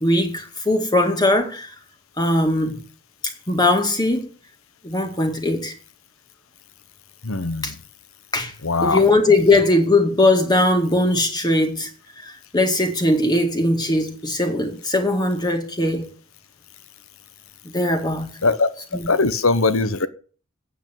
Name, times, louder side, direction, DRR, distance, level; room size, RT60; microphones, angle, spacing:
voice 1, 0.0-1.7 2.2-2.8 3.5-4.3 4.8-5.7 7.6-7.7 8.3-8.5 8.8-11.9 12.2-16.1 17.7-18.3 18.9-19.1, left 2 dB, 20° left, 2.0 m, -20 dB
voice 2, 7.2-7.7 8.6-9.1 18.4-18.7 19.1-20.1, left 3 dB, 70° left, 1.1 m, -20 dB
8.7 x 8.1 x 9.1 m
head